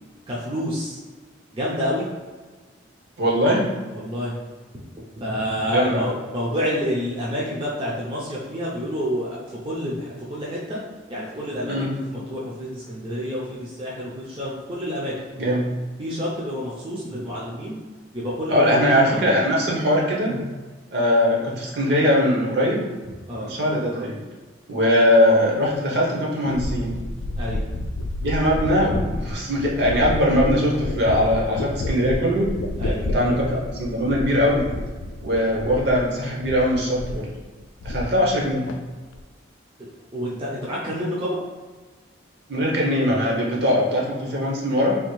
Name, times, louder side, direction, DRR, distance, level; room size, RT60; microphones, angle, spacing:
voice 1, 0.3-1.0 1.5-2.1 3.9-4.4 5.1-10.8 11.1-15.1 16.0-17.8 18.1-19.4 23.3-23.5 27.4-27.6 28.9-29.0 32.8-33.0 40.1-41.4, equal, 30° right, -6 dB, 0.5 m, -28 dB
voice 2, 3.2-3.7 5.7-6.1 11.7-11.9 15.4-15.7 18.5-20.4 20.9-22.8 23.4-24.2 24.7-27.0 28.2-32.5 32.9-34.7 35.2-37.3 37.8-38.7 42.5-45.0, equal, 60° right, -3 dB, 0.8 m, -21 dB
sound 1, 26.5-36.2 36.4-37.3 37.6-38.4 38.7-39.2, left 2 dB, 90° left, 0.3 m, -30 dB
3.4 x 2.4 x 3.0 m, 1.3 s
head